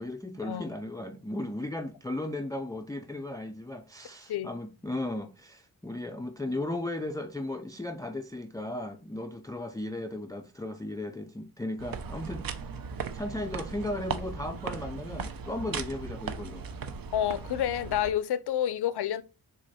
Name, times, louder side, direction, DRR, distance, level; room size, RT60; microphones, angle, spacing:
voice 1, 0.0-12.5 13.1-16.7, left 1 dB, 10° left, 0.4 m, -36 dB
sound 1, 11.8-18.1, right 5 dB, 65° right, 0.8 m, -37 dB
voice 2, 17.1-19.2, left 10 dB, 85° left, 0.6 m, -29 dB
6.4 x 3.8 x 4.1 m
wide cardioid pair, 140°, 38 cm